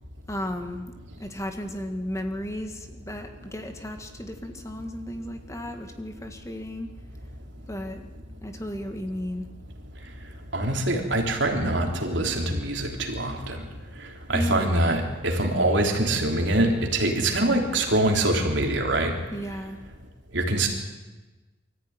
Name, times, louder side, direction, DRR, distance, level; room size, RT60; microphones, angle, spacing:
voice 1, 0.3-0.9 1.2-6.9 7.7-8.0 8.4-9.5 14.3-14.9 19.3-19.8, equal, 15° left, 5 dB, 1.7 m, -34 dB
voice 2, 10.5-13.6 14.3-19.1 20.3-20.7, right 1 dB, 70° right, 2 dB, 3.5 m, -24 dB
24.0 x 14.5 x 9.6 m, 1.2 s
head